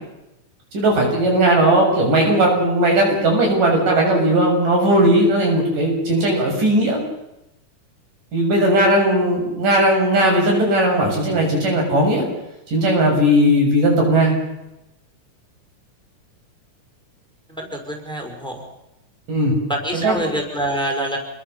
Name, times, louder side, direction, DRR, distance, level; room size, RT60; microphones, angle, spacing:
voice 1, 0.7-7.0 8.3-12.2 12.7-14.3 19.3-19.5 19.9-20.2, right 1 dB, 85° right, 0 dB, 8.5 m, -17 dB
voice 2, 17.5-18.6 19.7-21.2, right 1 dB, ahead, 2 dB, 5.0 m, -26 dB
28.0 x 22.0 x 6.9 m, 0.90 s
omnidirectional pair, 3.7 m